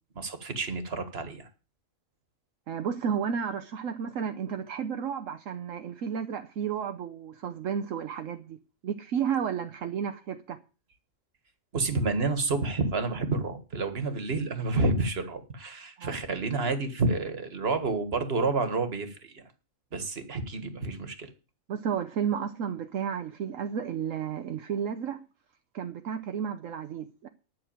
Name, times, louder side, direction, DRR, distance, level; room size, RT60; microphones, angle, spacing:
voice 1, 0.2-1.5 11.7-19.4 19.9-21.3, right 3 dB, 50° right, 1.8 m, -29 dB
voice 2, 2.7-8.6 8.8-10.6 16.0-16.2 21.7-25.2 25.7-27.3, right 7 dB, 75° right, 1.2 m, -32 dB
11.0 x 6.3 x 8.8 m
omnidirectional pair, 1.4 m